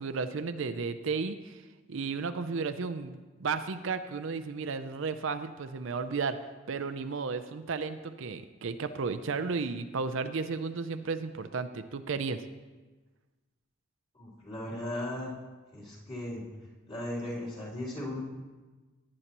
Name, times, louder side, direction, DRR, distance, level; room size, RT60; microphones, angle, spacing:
voice 1, 0.0-1.6 1.9-6.4 6.7-12.4, right 4 dB, 65° right, 10 dB, 0.5 m, -33 dB
voice 2, 14.1-15.3 15.7-16.4 16.9-18.2, left 1 dB, 30° left, -7 dB, 3.3 m, -37 dB
17.5 x 9.7 x 3.0 m, 1.2 s
head